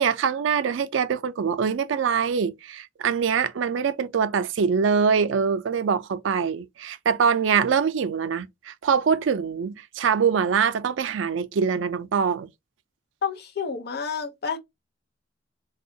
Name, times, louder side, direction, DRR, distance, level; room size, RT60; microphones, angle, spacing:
voice 1, 0.0-12.5, right 6 dB, 85° right, 0.4 m, -24 dB
voice 2, 13.2-14.6, left 6 dB, 55° left, 0.7 m, -30 dB
3.4 x 2.3 x 2.6 m
head